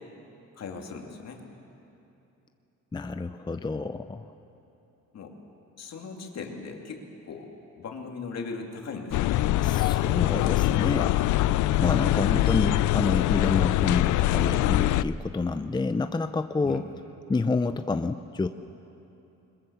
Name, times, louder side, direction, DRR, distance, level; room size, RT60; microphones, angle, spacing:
voice 1, 0.5-1.4 5.1-5.4 5.8-9.5 11.9-12.3 16.6-16.8, left 4 dB, 60° left, 2 dB, 2.6 m, -38 dB
voice 2, 2.9-4.3 9.6-11.2 11.8-16.9 17.3-18.5, left 3 dB, 15° left, 9 dB, 0.6 m, -29 dB
sound 1, 9.1-15.0, left 15 dB, 80° left, 0.5 m, -23 dB
21.5 x 21.0 x 7.1 m, 2.9 s
cardioid pair, 90°, 30 cm